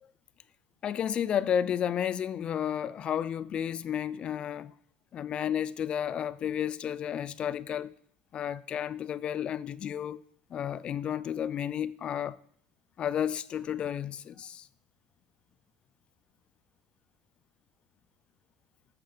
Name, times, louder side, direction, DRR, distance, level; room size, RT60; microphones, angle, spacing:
voice 1, 0.8-4.7 5.1-7.9 8.3-10.2 10.5-12.4 13.0-14.7, left 9 dB, 35° left, 0.5 m, -32 dB
12.0 x 7.4 x 5.0 m
cardioid pair, 150°, 3 cm